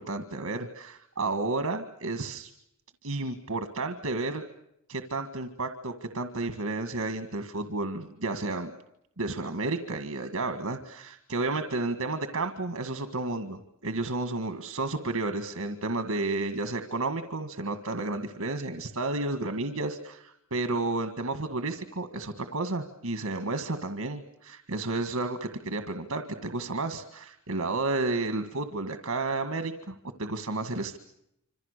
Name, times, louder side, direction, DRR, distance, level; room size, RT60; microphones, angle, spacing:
voice 1, 0.0-2.5 3.0-4.4 4.9-8.7 9.2-31.0, right 2 dB, 85° right, 8 dB, 1.8 m, -32 dB
27.0 x 27.0 x 6.7 m, 0.78 s
head